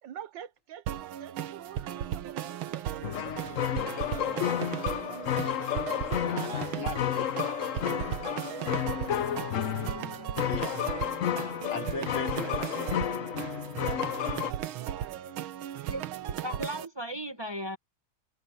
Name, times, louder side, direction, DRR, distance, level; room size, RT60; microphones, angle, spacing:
voice 1, 0.0-6.2 8.5-10.3 13.8-15.4, right 10 dB, 70° right, 1.5 m, -48 dB
sound 1, 0.9-16.9, right 11 dB, 90° right, 1.8 m, -36 dB
Female speech woman speaking, 1.9-3.8 4.2-6.3 6.7-10.9, left 1 dB, 15° left, 3.4 m, -60 dB
sound 2, 3.0-14.5, left 10 dB, 60° left, 0.9 m, -31 dB
voice 2, 6.2-7.6 10.4-10.9 11.5-13.1, left 5 dB, 80° left, 4.1 m, -39 dB
voice 3, 15.8-17.8, equal, 15° right, 1.6 m, -37 dB
omnidirectional pair, 2.2 m